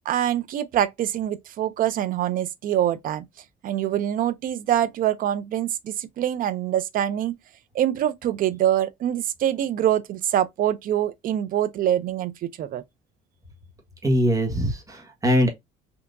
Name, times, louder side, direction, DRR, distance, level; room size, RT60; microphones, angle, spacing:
voice 1, 0.1-3.2 3.6-7.4 7.7-12.8, right 11 dB, 55° right, 0.5 m, -24 dB
voice 2, 14.0-15.5, equal, 20° right, 1.3 m, -22 dB
3.5 x 2.8 x 2.5 m
cardioid pair, 110°, 17 cm